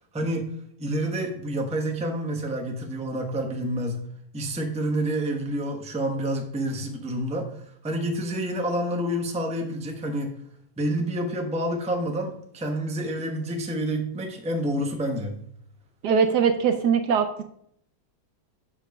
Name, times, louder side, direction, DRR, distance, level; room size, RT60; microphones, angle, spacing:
voice 1, 0.1-0.5 0.8-4.0 4.3-10.3 10.8-15.4, right 1 dB, 5° right, 2 dB, 0.7 m, -28 dB
voice 2, 16.0-17.4, right 6 dB, 70° right, 8 dB, 1.1 m, -21 dB
7.2 x 5.5 x 5.3 m, 0.70 s
omnidirectional pair, 2.0 m